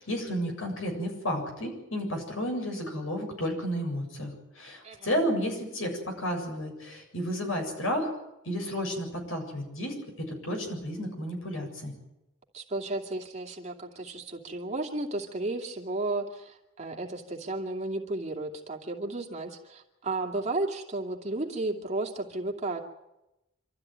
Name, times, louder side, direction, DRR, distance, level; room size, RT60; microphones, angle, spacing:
voice 1, 0.0-8.1 8.4-11.9, equal, 75° left, 3 dB, 7.7 m, -32 dB
voice 2, 12.5-22.8, right 2 dB, 30° right, 1 dB, 2.5 m, -33 dB
26.0 x 14.0 x 9.4 m, 0.91 s
head